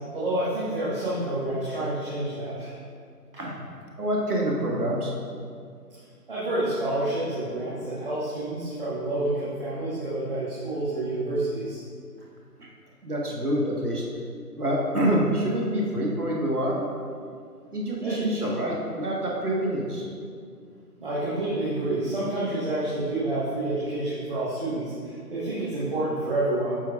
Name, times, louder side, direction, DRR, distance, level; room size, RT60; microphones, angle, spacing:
voice 1, 0.1-2.7 6.3-11.8 18.0-18.4 21.0-26.8, right 2 dB, 35° right, -10 dB, 1.4 m, -28 dB
voice 2, 4.0-5.1 12.6-12.7 13.0-14.0 14.6-16.9 17.7-20.1, right 1 dB, 65° right, -2 dB, 1.5 m, -26 dB
12.5 x 4.8 x 2.4 m, 2.2 s
figure-of-eight pair, 160°, 49 cm